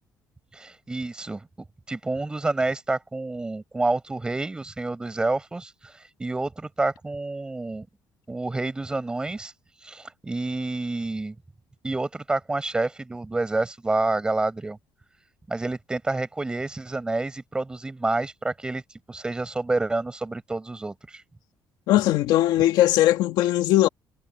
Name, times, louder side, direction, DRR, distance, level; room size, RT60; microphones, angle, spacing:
voice 1, 0.5-1.5 1.9-5.9 6.2-7.9 8.3-9.5 9.8-11.3 11.8-14.8 15.5-18.8 19.1-21.2, right 2 dB, 10° right, 4.6 m, -28 dB
voice 2, 21.9-23.9, left 14 dB, 85° left, 1.7 m, -19 dB
cardioid pair, 155°, 7 cm